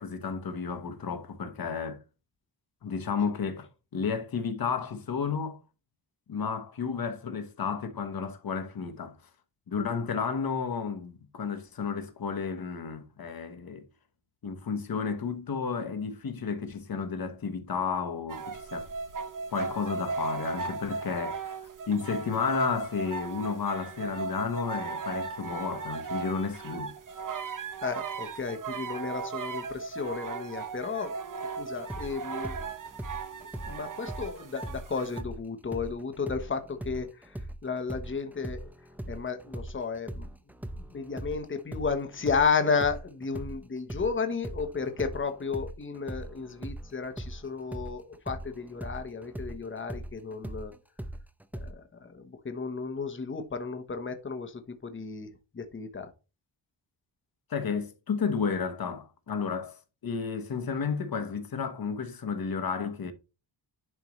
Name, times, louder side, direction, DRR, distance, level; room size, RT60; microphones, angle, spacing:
voice 1, 0.0-2.0 2.8-5.6 6.3-9.1 9.7-13.8 14.4-18.9 19.5-21.6 21.9-26.9 57.5-63.1, left 5 dB, 50° left, 1.2 m, -32 dB
sound 1, 18.3-35.2, right 4 dB, 45° right, 0.9 m, -37 dB
voice 2, 27.8-31.1 31.6-32.6 33.7-38.7 39.1-40.3 40.8-50.7 51.6-56.1, left 5 dB, 25° left, 1.0 m, -33 dB
sound 2, 31.9-35.4 35.7-43.6 43.9-51.7, right 1 dB, 5° right, 0.5 m, -40 dB
11.0 x 4.6 x 3.1 m
wide cardioid pair, 165°, 46 cm